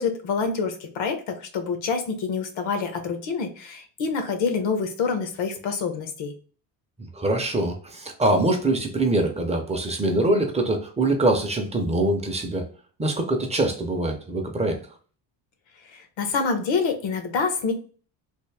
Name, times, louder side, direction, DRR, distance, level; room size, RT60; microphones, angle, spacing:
voice 1, 0.0-6.3 15.9-17.7, left 5 dB, 75° left, 6 dB, 1.0 m, -27 dB
voice 2, 7.1-12.6 13.0-14.8, right 2 dB, 15° right, 3 dB, 0.5 m, -23 dB
3.4 x 2.5 x 3.3 m, 0.41 s
cardioid pair, 150°, 45 cm